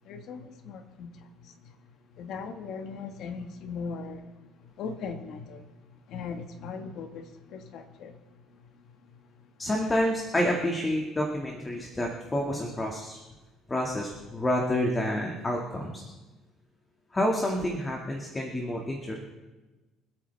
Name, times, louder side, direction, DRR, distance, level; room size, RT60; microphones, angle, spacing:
voice 1, 0.0-1.5 2.2-4.3 4.8-5.7 6.1-8.2, left 5 dB, 65° left, 1.7 m, -39 dB
voice 2, 9.6-13.2 13.7-16.0 17.1-19.1, left 1 dB, 20° left, 2.1 m, -28 dB
26.0 x 8.8 x 3.5 m
cardioid pair, 105°, 0 cm